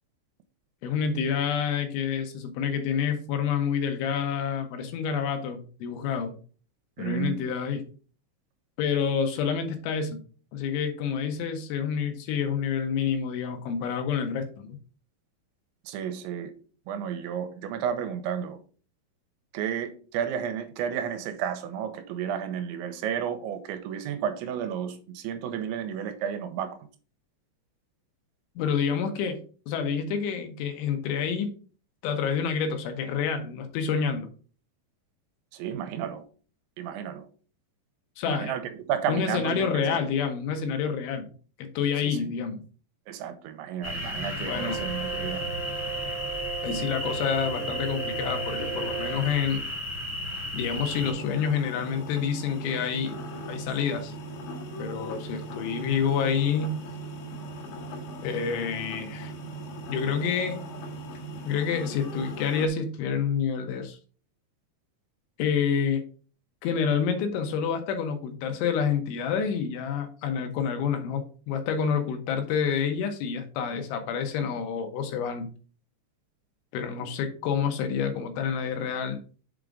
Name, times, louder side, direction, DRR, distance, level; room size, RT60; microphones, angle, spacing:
voice 1, 0.8-6.3 7.0-7.8 8.8-10.2 10.5-14.8 28.6-29.4 29.7-31.5 32.0-34.3 38.2-38.5 39.1-41.3 41.6-42.6 44.4-44.8 46.6-49.6 50.5-53.2 53.5-54.1 54.8-56.8 58.2-59.3 59.9-60.6 61.5-64.0 65.4-66.0 66.6-75.5 76.7-79.2, left 7 dB, 85° left, 6 dB, 3.4 m, -28 dB
voice 2, 7.0-7.4 15.8-16.5 16.9-18.6 19.5-26.8 35.5-36.3 36.8-37.3 38.2-40.0 42.0-42.2 43.1-45.4, right 8 dB, 90° right, 8 dB, 3.0 m, -32 dB
sound 1, 43.8-51.1, left 1 dB, 20° left, 0.4 m, -34 dB
Brass instrument, 44.4-49.3, right 7 dB, 65° right, 1.6 m, -35 dB
sound 2, 50.9-62.7, right 2 dB, 65° left, 2.3 m, -39 dB
7.4 x 3.8 x 4.7 m, 0.39 s
omnidirectional pair, 5.4 m